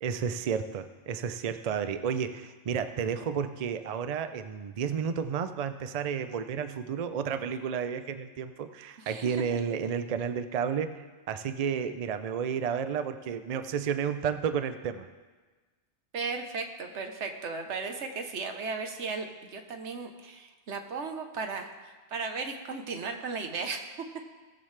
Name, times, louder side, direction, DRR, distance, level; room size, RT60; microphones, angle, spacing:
voice 1, 0.0-15.1, right 7 dB, 45° right, 9 dB, 0.5 m, -32 dB
voice 2, 9.0-9.6 16.1-23.8, right 4 dB, 85° right, 5 dB, 1.3 m, -36 dB
18.0 x 7.3 x 3.3 m, 1.3 s
omnidirectional pair, 1.1 m